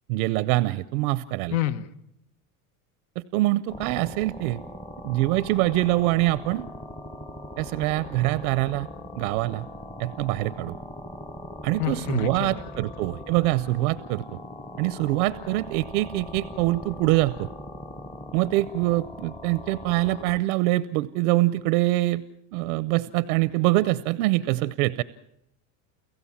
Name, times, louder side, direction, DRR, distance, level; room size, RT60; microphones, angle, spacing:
voice 1, 0.1-1.6 3.2-4.6 5.0-6.7 7.6-8.9 9.2-9.7 10.0-10.8 11.6-14.2 14.8-17.5 18.3-22.2 22.5-25.0, right 18 dB, 80° right, 16 dB, 0.8 m, -24 dB
voice 2, 1.5-1.9 11.8-12.6, left 12 dB, 70° left, 12 dB, 1.3 m, -28 dB
sound 1, 3.7-20.4, left 1 dB, 5° left, 0.7 m, -40 dB
29.5 x 15.5 x 7.3 m, 0.80 s
cardioid pair, 155°, 43 cm